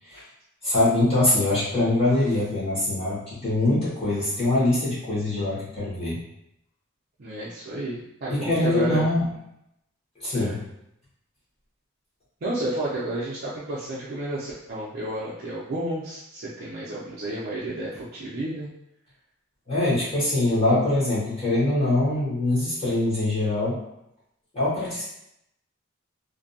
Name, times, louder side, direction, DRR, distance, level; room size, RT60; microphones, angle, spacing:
voice 1, 0.6-6.2 8.3-9.3 10.2-10.6 19.7-23.8 24.5-25.0, left 2 dB, 30° left, -10 dB, 0.9 m, -23 dB
voice 2, 7.2-9.0 10.3-10.6 12.4-18.7, right 1 dB, 50° right, -8 dB, 0.4 m, -31 dB
2.5 x 2.2 x 2.6 m, 0.81 s
head